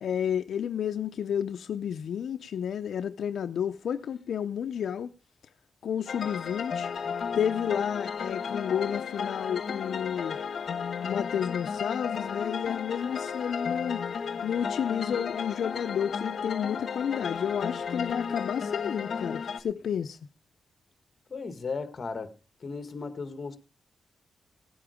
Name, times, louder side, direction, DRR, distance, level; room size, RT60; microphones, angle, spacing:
voice 1, 0.0-5.1 5.8-6.9 7.3-10.4 11.0-14.0 14.4-20.2, left 8 dB, 80° left, 0.6 m, -31 dB
sound 1, 6.1-19.6, left 6 dB, 60° left, 1.3 m, -33 dB
voice 2, 21.3-23.6, left 4 dB, 40° left, 1.6 m, -36 dB
17.5 x 8.7 x 5.0 m
wide cardioid pair, 150°, 0 cm